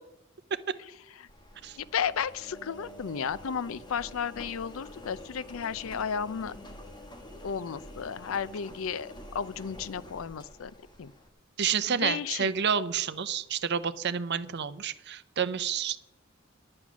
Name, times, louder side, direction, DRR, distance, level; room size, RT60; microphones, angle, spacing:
Engine, 1.3-11.3, left 1 dB, 20° left, 1.4 m, -47 dB
voice 1, 1.8-6.5 7.4-10.7 11.0-11.1 11.9-12.5, left 7 dB, 75° left, 18 dB, 0.5 m, -33 dB
voice 2, 11.6-16.0, right 7 dB, 55° right, 14 dB, 0.6 m, -29 dB
9.9 x 9.6 x 6.1 m, 0.90 s
head